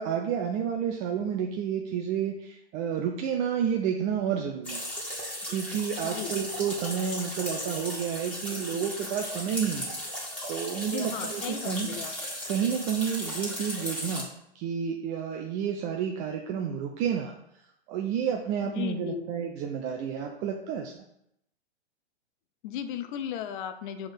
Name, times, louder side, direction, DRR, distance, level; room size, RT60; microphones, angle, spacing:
voice 1, 0.0-4.9 5.5-10.0 10.5-12.0 12.5-14.3 14.5-17.3 17.9-20.9, right 8 dB, 25° right, 2 dB, 0.4 m, -30 dB
sound 1, 4.6-14.2, equal, 5° left, 1.8 m, -36 dB
voice 2, 6.0-6.4 10.9-12.1 18.6-19.3 22.6-24.1, left 9 dB, 50° left, 9 dB, 0.6 m, -36 dB
5.0 x 3.5 x 5.5 m, 0.77 s
hypercardioid pair, 120°, 33 cm